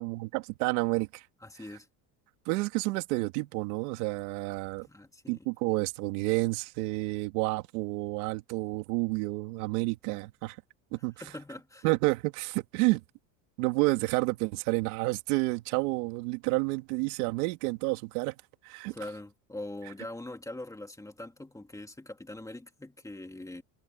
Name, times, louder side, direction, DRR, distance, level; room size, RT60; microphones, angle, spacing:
voice 1, 0.0-1.2 2.5-4.9 5.3-10.6 10.9-11.2 11.8-13.0 13.6-18.3 18.6-18.9, right 24 dB, 80° right, 2.5 m, -30 dB
voice 2, 1.4-1.9 4.9-5.5 11.2-11.9 18.9-23.6, left 1 dB, 5° left, 2.4 m, -42 dB
supercardioid pair, 130°, 44 cm